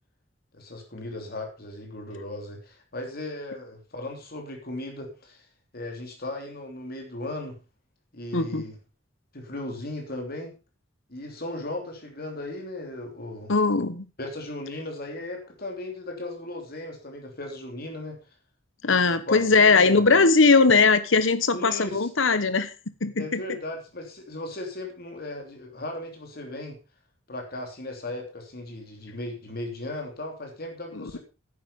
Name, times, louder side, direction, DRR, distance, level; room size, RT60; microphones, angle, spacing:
voice 1, 0.5-5.5 5.7-7.6 8.1-8.8 9.3-10.5 11.1-13.5 14.2-18.2 18.9-20.1 21.5-22.1 23.2-26.8 27.3-31.2, left 2 dB, 50° left, 2 dB, 3.1 m, -37 dB
voice 2, 8.3-8.6 13.5-14.1 18.8-22.7 23.0-23.4 30.9-31.2, left 4 dB, 80° left, 12 dB, 1.2 m, -20 dB
10.0 x 9.5 x 5.3 m, 0.32 s
head